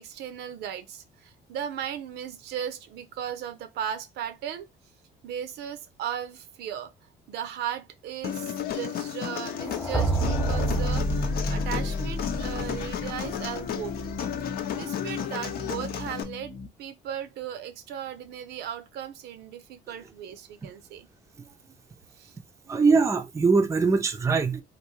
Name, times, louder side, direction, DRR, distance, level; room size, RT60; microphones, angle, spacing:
voice 1, 0.0-4.7 5.2-6.9 7.3-14.1 14.7-21.1 22.2-22.3, right 9 dB, 75° right, 0.6 m, -36 dB
Human voice, 8.2-16.2, left 9 dB, 65° left, 0.6 m, -33 dB
sound 1, 9.6-13.6, right 1 dB, 10° left, 0.9 m, -28 dB
sound 2, 10.7-16.7, left 3 dB, 25° left, 0.6 m, -40 dB
voice 2, 22.7-24.6, right 4 dB, 15° right, 0.5 m, -22 dB
3.3 x 2.5 x 3.1 m
cardioid pair, 110°, 17 cm